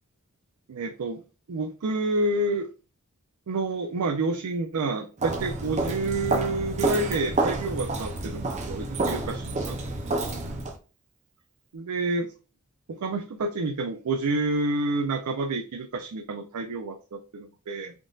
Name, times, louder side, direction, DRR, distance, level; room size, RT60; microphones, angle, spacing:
voice 1, 0.7-1.2 1.5-2.7 3.5-10.0 11.7-12.3 12.9-17.9, right 2 dB, 85° right, 4 dB, 0.4 m, -29 dB
Walk footsteps, 5.2-10.8, right 2 dB, 30° right, 0.5 m, -29 dB
3.6 x 2.5 x 2.3 m, 0.34 s
head